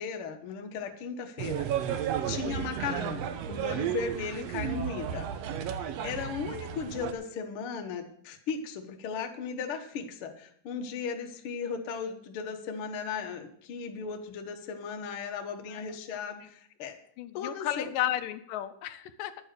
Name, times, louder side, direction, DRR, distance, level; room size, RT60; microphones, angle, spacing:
voice 1, 0.0-5.3 5.7-17.0 17.3-17.9, left 5 dB, 55° left, 4 dB, 1.6 m, -36 dB
sound 1, 1.4-7.1, right 9 dB, 70° right, 1.6 m, -33 dB
voice 2, 17.2-19.3, left 12 dB, 80° left, 10 dB, 2.3 m, -33 dB
10.5 x 8.9 x 6.7 m, 0.65 s
omnidirectional pair, 3.8 m